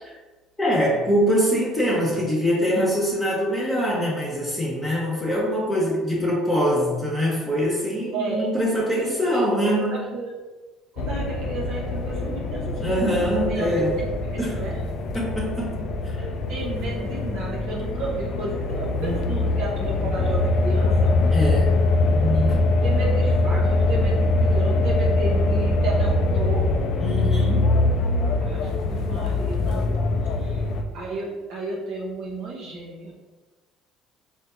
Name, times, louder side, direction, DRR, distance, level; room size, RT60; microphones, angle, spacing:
voice 1, 0.6-10.0 12.8-14.0 14.4-14.7 15.1-15.8 16.0-16.2 19.0-19.3 21.3-21.7 22.1-22.7 27.0-27.6, equal, 10° left, -5 dB, 0.9 m, -24 dB
voice 2, 8.1-8.5 9.0-10.3 10.9-14.8 16.2-21.1 22.7-26.8 28.4-29.9 30.4-30.6 30.9-33.1, right 3 dB, 65° right, -4 dB, 0.6 m, -32 dB
sound 1, 11.0-30.8, left 2 dB, 60° left, 0.3 m, -23 dB
4.3 x 2.0 x 2.5 m, 1.2 s
hypercardioid pair, 60°, 0 cm